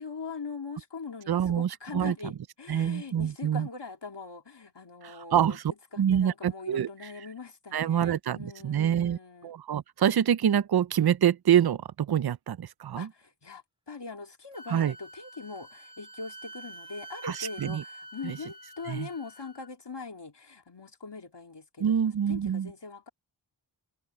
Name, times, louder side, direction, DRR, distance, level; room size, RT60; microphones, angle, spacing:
voice 1, 0.0-5.6 5.9-9.5 13.0-23.1, left 4 dB, 60° left, 2.3 m, -42 dB
voice 2, 1.3-2.1 2.7-3.7 5.0-5.6 6.0-6.9 7.7-13.1 14.7-14.9 17.2-17.8 18.2-18.4 18.9-19.1 21.8-22.7, right 9 dB, 55° right, 0.5 m, -26 dB
Wind instrument woodwind instrument, 14.5-19.7, right 1 dB, 10° right, 1.6 m, -47 dB
wide cardioid pair, 50°, 48 cm